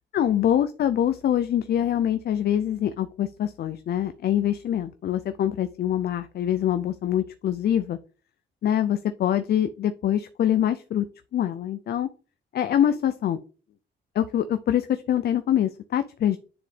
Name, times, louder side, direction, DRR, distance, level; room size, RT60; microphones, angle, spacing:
voice 1, 0.1-8.0 8.6-11.1 11.3-12.1 12.5-13.4 14.1-16.4, left 10 dB, 55° left, 10 dB, 0.4 m, -24 dB
9.7 x 3.8 x 3.3 m, 0.38 s
cardioid pair, 90°, 20 cm